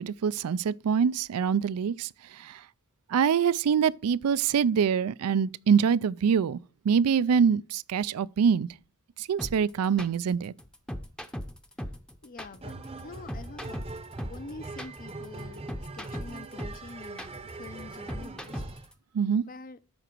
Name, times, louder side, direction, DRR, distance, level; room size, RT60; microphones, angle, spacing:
voice 1, 0.0-2.1 2.4-2.6 3.1-6.6 6.8-8.7 9.2-10.5 19.1-19.4, right 7 dB, 80° right, 0.4 m, -25 dB
sound 1, 9.4-18.9, equal, 5° left, 0.7 m, -38 dB
voice 2, 12.2-12.8 13.0-13.8 14.3-18.6 19.4-19.8, left 3 dB, 40° left, 0.5 m, -46 dB
sound 2, 12.6-18.9, right 3 dB, 25° right, 0.7 m, -42 dB
13.0 x 5.0 x 4.5 m
head